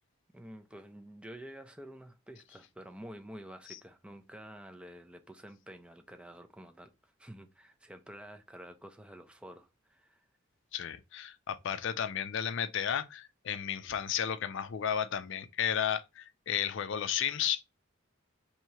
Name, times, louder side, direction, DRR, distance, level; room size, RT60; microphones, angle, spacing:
voice 1, 0.3-10.3, equal, 5° right, 0.4 m, -49 dB
voice 2, 10.7-17.6, left 9 dB, 60° left, 0.4 m, -33 dB
2.9 x 2.7 x 4.3 m
head